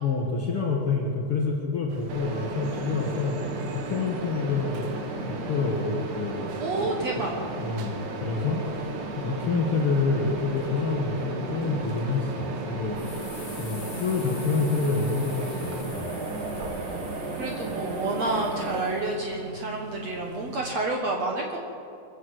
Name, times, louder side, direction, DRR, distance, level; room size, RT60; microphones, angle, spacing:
voice 1, 0.0-3.4 3.8-4.9 5.3-6.6 7.6-8.6 9.2-13.0 13.6-16.2, left 4 dB, 75° left, -1 dB, 1.3 m, -27 dB
sound 1, 1.9-20.7, right 3 dB, 90° right, 3.6 m, -45 dB
Mechanisms, 2.1-18.8, right 3 dB, 55° right, 2.9 m, -34 dB
voice 2, 6.6-7.4 17.4-21.6, right 2 dB, 70° right, 1 dB, 1.6 m, -29 dB
sound 2, 13.0-19.1, left 4 dB, 35° left, 2.0 m, -46 dB
23.0 x 15.0 x 7.9 m, 2.7 s
omnidirectional pair, 5.2 m